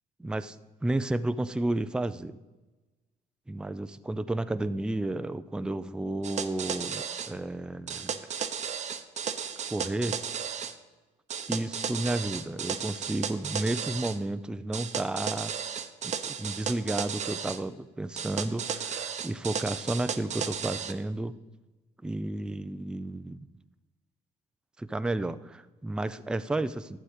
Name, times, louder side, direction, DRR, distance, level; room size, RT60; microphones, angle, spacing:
voice 1, 0.2-0.6 0.8-2.3 3.5-8.1 9.7-10.2 11.5-15.5 16.0-21.3 22.0-23.5 24.8-27.0, right 2 dB, 5° right, 13 dB, 0.4 m, -32 dB
sound 1, 6.2-7.3 7.9-10.7 11.3-14.2 14.7-17.6 18.2-20.9, right 7 dB, 45° right, 0.8 m, -34 dB
11.5 x 4.9 x 8.1 m, 1.2 s
cardioid pair, 110°, 17 cm